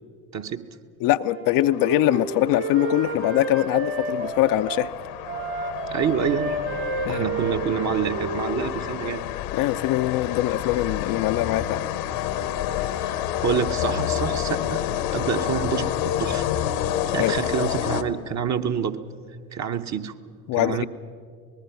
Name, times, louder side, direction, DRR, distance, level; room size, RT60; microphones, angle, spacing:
voice 1, 0.3-0.6 5.9-6.5 7.0-9.2 12.8-13.1 13.4-14.8 15.1-16.5 17.1-19.0 19.5-20.1 20.6-20.9, right 7 dB, 40° right, 7 dB, 1.2 m, -27 dB
voice 2, 1.0-4.9 7.1-7.2 9.5-11.8 17.2-17.3 20.5-20.9, left 14 dB, 50° left, 11 dB, 0.6 m, -22 dB
Wind instrument woodwind instrument, 1.3-4.9 5.3-8.9, right 2 dB, 70° right, 3.5 m, -31 dB
sound 1, 1.7-18.5, left 11 dB, 70° left, 1.1 m, -29 dB
26.0 x 20.0 x 5.9 m, 2.1 s
figure-of-eight pair, 55°, 43 cm